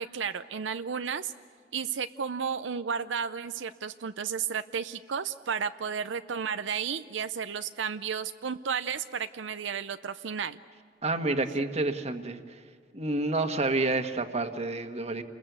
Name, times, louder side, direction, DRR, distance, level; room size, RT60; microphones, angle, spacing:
voice 1, 0.0-1.3 1.7-10.6, right 6 dB, 85° right, 10 dB, 0.6 m, -33 dB
voice 2, 11.0-12.4 12.9-15.2, right 2 dB, 35° right, 7 dB, 1.5 m, -29 dB
29.5 x 21.5 x 8.2 m, 2.1 s
head